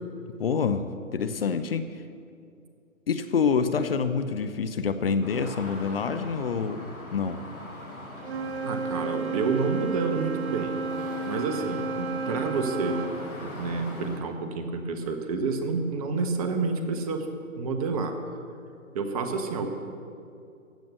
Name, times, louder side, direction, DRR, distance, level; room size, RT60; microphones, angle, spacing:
voice 1, 0.4-1.9 3.1-7.4, left 5 dB, 45° left, 10 dB, 0.8 m, -27 dB
sound 1, 5.2-14.2, left 1 dB, 85° left, 4.7 m, -42 dB
Wind instrument woodwind instrument, 8.2-13.2, right 4 dB, 50° right, 1.4 m, -32 dB
voice 2, 8.6-10.7 11.2-13.0 13.4-17.3 17.6-18.2 18.9-19.8, right 4 dB, 25° right, 6 dB, 1.2 m, -29 dB
15.5 x 10.5 x 6.8 m, 2.5 s
figure-of-eight pair, 140°, 41 cm